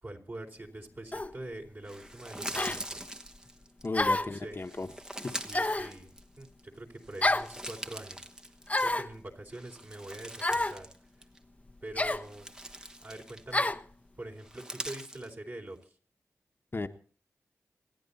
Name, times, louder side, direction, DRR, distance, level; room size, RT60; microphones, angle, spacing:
voice 1, 0.0-3.1 4.1-4.6 5.3-8.3 8.8-10.9 11.8-13.8 14.2-16.0, right 1 dB, 40° right, 2 dB, 4.2 m, -45 dB
sound 1, 1.1-1.3 2.5-2.8 3.9-4.4 5.5-5.9 7.2-7.5 8.7-9.1 10.4-10.8 11.9-12.2 13.5-13.8, left 2 dB, 25° left, 0.9 m, -28 dB
sound 2, 1.8-3.9 4.6-6.6 7.0-9.1 9.5-11.0 11.2-11.4 12.0-13.7 14.4-15.3, right 1 dB, 10° right, 1.2 m, -43 dB
voice 2, 3.8-4.9 5.2-5.3 16.7-16.9, left 3 dB, 40° left, 5 dB, 1.3 m, -34 dB
27.5 x 10.0 x 4.2 m, 0.42 s
cardioid pair, 50°, 6 cm